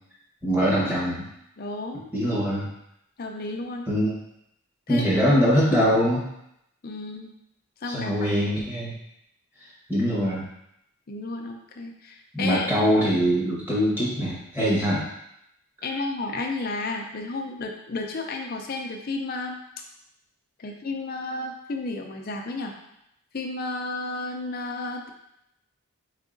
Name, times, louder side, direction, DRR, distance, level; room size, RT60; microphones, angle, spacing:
voice 1, 0.4-1.2 2.1-2.7 3.9-4.1 4.9-6.2 7.8-8.9 9.9-10.5 12.3-15.0, equal, 10° right, -7 dB, 1.1 m, -23 dB
voice 2, 1.6-2.1 3.2-3.9 4.9-5.1 6.8-7.3 7.8-8.1 11.1-12.7 15.8-19.6 20.6-22.7 23.3-25.1, left 2 dB, 45° left, 2 dB, 0.5 m, -32 dB
4.0 x 3.6 x 2.5 m, 0.79 s
head